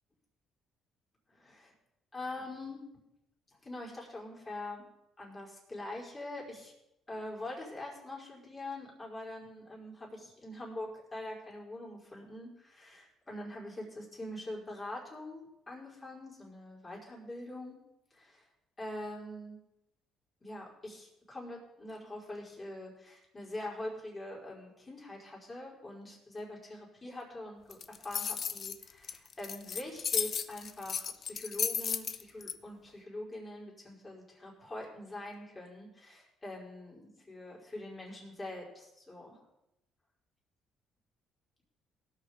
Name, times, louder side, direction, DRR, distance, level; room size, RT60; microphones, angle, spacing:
voice 1, 1.3-1.7 2.1-2.8 3.6-4.8 5.2-6.7 7.1-17.8 18.1-18.5 18.8-19.6 20.4-39.4, left 1 dB, 25° left, -3 dB, 5.0 m, -44 dB
sound 1, 27.7-32.5, left 7 dB, 50° left, 0.7 m, -34 dB
17.5 x 6.6 x 5.3 m, 0.89 s
supercardioid pair, 75°, 0 cm